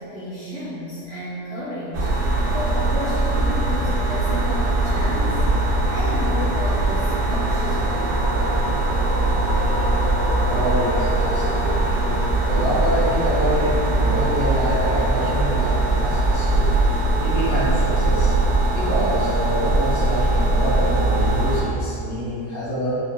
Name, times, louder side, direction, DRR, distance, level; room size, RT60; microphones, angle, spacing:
voice 1, 0.0-2.1 2.5-5.5 5.9-8.2, left 1 dB, 65° left, -11 dB, 1.5 m, -32 dB
sound 1, 1.9-21.6, right 2 dB, 65° right, 1.0 m, -21 dB
voice 2, 10.4-12.0 12.4-16.7 17.2-18.3 18.7-23.0, equal, 35° left, -11 dB, 1.0 m, -26 dB
4.7 x 2.0 x 2.2 m, 2.5 s
omnidirectional pair, 1.8 m